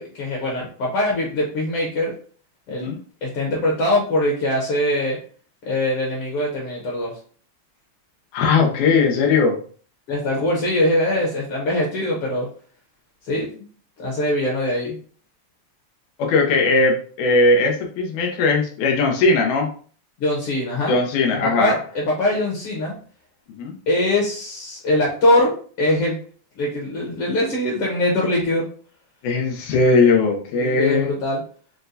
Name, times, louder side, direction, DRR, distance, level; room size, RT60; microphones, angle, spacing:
voice 1, 0.0-2.1 2.7-2.9 3.2-5.2 5.6-7.1 10.1-12.5 13.3-13.7 14.0-15.0 20.2-20.9 21.6-22.9 23.9-26.2 26.6-28.7 30.6-31.4, left 1 dB, 65° left, -2 dB, 1.5 m, -22 dB
voice 2, 8.3-9.6 16.2-19.7 20.9-21.8 23.6-23.7 29.2-31.1, left 3 dB, 90° left, 1 dB, 2.2 m, -19 dB
6.4 x 2.2 x 2.6 m, 0.43 s
omnidirectional pair, 3.3 m